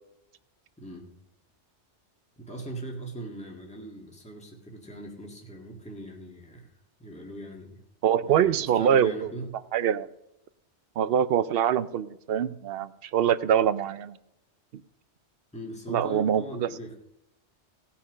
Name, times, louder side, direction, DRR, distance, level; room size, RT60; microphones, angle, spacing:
voice 1, 0.8-1.1 2.4-7.8 8.2-9.5 15.5-17.0, right 1 dB, 5° left, 0 dB, 1.7 m, -40 dB
voice 2, 8.0-9.3 9.7-10.1 11.0-14.2 14.7-14.8 15.9-16.7, right 9 dB, 65° right, 15 dB, 0.7 m, -24 dB
17.0 x 5.8 x 6.2 m, 0.82 s
omnidirectional pair, 1.2 m